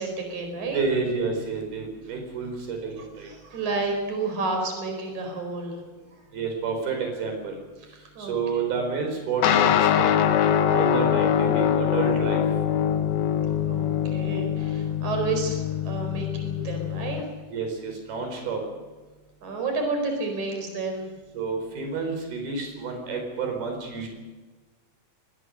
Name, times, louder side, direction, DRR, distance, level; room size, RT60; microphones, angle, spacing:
voice 1, 0.0-0.8 3.2-5.8 8.2-8.3 13.7-17.2 19.4-21.0, right 3 dB, 50° right, 4 dB, 6.1 m, -30 dB
voice 2, 0.7-3.3 6.3-7.6 8.2-10.3 10.7-12.4 17.5-18.6 21.3-24.1, right 4 dB, 85° right, 3 dB, 6.4 m, -29 dB
sound 1, 9.4-17.2, left 9 dB, 85° left, 3.2 m, -23 dB
23.0 x 20.5 x 6.6 m, 1.3 s
omnidirectional pair, 4.3 m